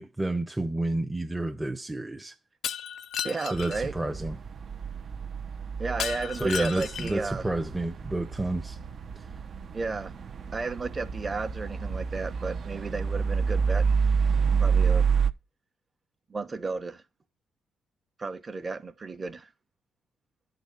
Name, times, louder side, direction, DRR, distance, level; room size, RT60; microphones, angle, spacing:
voice 1, 0.0-2.3 3.5-4.4 6.4-8.8, right 2 dB, 10° right, 0.8 m, -30 dB
Shatter, 2.6-3.8 6.0-7.3, left 9 dB, 70° left, 0.4 m, -34 dB
voice 2, 3.2-3.9 5.8-7.4 9.7-10.1 10.5-13.9 14.6-15.1 16.3-17.0 18.2-19.5, right 3 dB, 30° right, 1.2 m, -33 dB
sound 1, 3.5-15.3, right 6 dB, 50° right, 0.8 m, -29 dB
11.0 x 4.1 x 6.9 m
cardioid pair, 90°, 0 cm